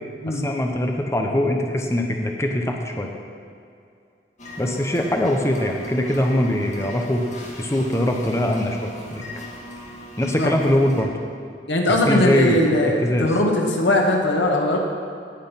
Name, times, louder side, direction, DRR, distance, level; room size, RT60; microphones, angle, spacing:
voice 1, 0.3-3.1 4.6-7.2 7.6-9.3 10.2-11.1 11.9-13.3, left 1 dB, 15° left, 2 dB, 0.9 m, -22 dB
sound 1, 4.4-11.0, left 1 dB, 45° left, 2.1 m, -38 dB
voice 2, 11.7-14.8, left 1 dB, 85° left, 1 dB, 1.9 m, -20 dB
18.0 x 6.3 x 5.8 m, 2.4 s
head